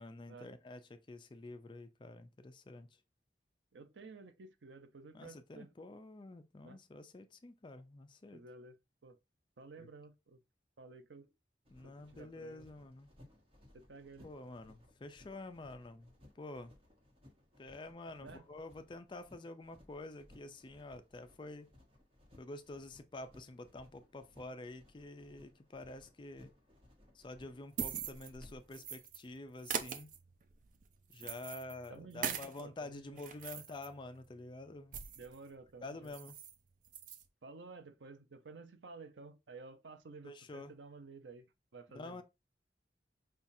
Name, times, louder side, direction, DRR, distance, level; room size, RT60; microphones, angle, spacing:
voice 1, 0.0-2.9 5.1-8.4 9.8-9.9 11.7-13.1 14.2-16.8 17.6-21.7 22.4-26.5 27.1-30.1 31.1-35.1 35.8-36.3 40.2-40.7 41.9-42.2, left 2 dB, 25° left, 0.4 m, -48 dB
voice 2, 3.7-5.7 6.6-6.8 8.3-8.8 9.0-9.2 9.6-10.4 10.8-11.3 11.8-12.7 13.7-14.3 18.2-18.5 31.9-33.2 33.5-33.6 35.2-36.1 37.4-42.2, right 3 dB, 90° right, 0.6 m, -53 dB
sound 1, 11.6-28.7, left 1 dB, 30° right, 1.1 m, -63 dB
sound 2, 27.4-29.2 29.6-32.6 33.0-35.4 35.7-35.8 36.0-36.6 36.9-37.3, right 7 dB, 45° right, 0.5 m, -43 dB
5.5 x 2.3 x 2.6 m
head